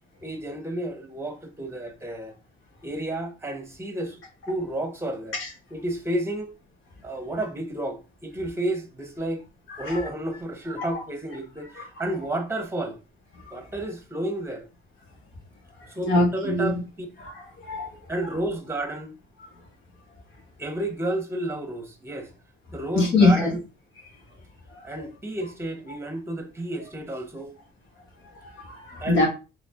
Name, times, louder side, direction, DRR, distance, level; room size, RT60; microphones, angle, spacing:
voice 1, 0.2-2.3 2.8-4.2 4.5-5.3 5.7-6.5 7.0-9.4 9.8-13.0 13.5-14.7 15.9-17.1 18.1-19.1 20.6-22.3 22.7-23.6 24.8-27.5 29.0-29.3, right 1 dB, 15° right, 1.0 m, -31 dB
voice 2, 9.7-10.0 10.8-10.9 11.7-11.9 13.5-13.6 15.8-16.7 17.2-18.0 22.9-23.5 24.7-25.0 28.4-29.3, left 2 dB, 85° left, 1.6 m, -24 dB
4.1 x 3.3 x 3.6 m
cardioid pair, 135°, 19 cm